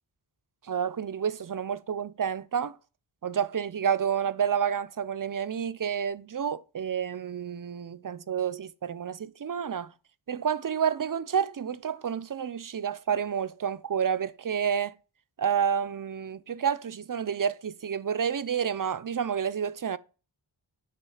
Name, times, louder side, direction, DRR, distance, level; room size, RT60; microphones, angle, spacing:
voice 1, 0.7-2.7 3.2-9.9 10.3-14.9 15.4-20.0, right 7 dB, 45° right, 0.6 m, -29 dB
9.9 x 3.7 x 4.9 m
wide cardioid pair, 50°, 46 cm